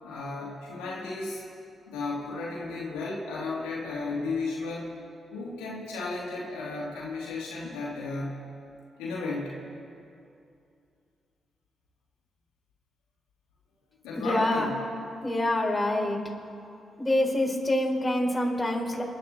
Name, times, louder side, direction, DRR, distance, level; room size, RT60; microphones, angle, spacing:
voice 1, 0.0-1.4 1.9-4.9 5.3-8.4 9.0-9.6 14.0-14.7, left 3 dB, 85° left, -6 dB, 2.7 m, -34 dB
voice 2, 14.1-14.7 15.2-16.2 17.0-19.0, left 1 dB, 20° left, -2 dB, 4.8 m, -26 dB
28.0 x 12.0 x 4.3 m, 2.6 s
hypercardioid pair, 45°, 0 cm